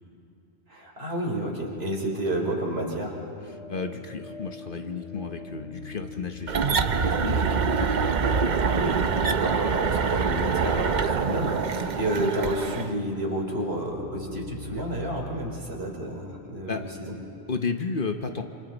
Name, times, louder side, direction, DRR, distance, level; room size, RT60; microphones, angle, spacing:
voice 1, 0.7-3.1 8.7-17.1, right 1 dB, 70° right, -1 dB, 3.5 m, -30 dB
sound 1, 1.5-17.5, left 4 dB, 85° left, 1.3 m, -43 dB
voice 2, 3.5-8.3 16.7-16.8 17.5-18.4, left 4 dB, 55° left, 6 dB, 1.1 m, -33 dB
sound 2, 6.5-12.9, right 5 dB, 50° right, 0.8 m, -25 dB
28.5 x 26.0 x 4.0 m, 2.6 s
omnidirectional pair, 1.1 m